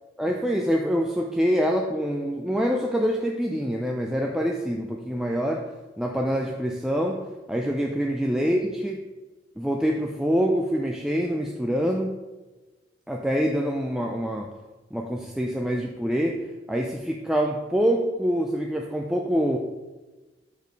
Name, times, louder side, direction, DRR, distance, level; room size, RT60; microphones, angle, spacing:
voice 1, 0.2-9.0 9.6-12.2 13.1-14.5 14.9-19.6, equal, 5° right, 0 dB, 0.3 m, -25 dB
6.6 x 5.1 x 3.9 m, 1.2 s
head